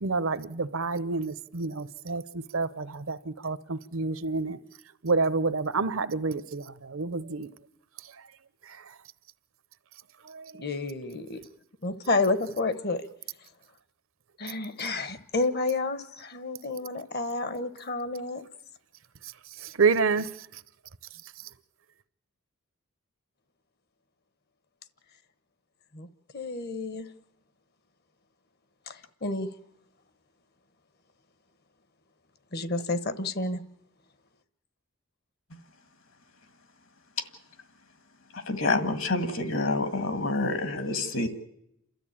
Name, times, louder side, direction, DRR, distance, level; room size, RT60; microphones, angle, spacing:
voice 1, 0.0-4.6 5.0-7.5 10.3-10.7 19.6-20.3, right 4 dB, 65° right, 0.7 m, -28 dB
voice 2, 10.6-11.4 11.8-13.0 14.4-18.4 25.9-26.1 26.3-27.1 28.9-29.5 32.5-33.6, left 3 dB, 45° left, 1.0 m, -30 dB
voice 3, 38.5-41.3, left 2 dB, 60° left, 1.9 m, -27 dB
29.0 x 13.0 x 8.7 m
head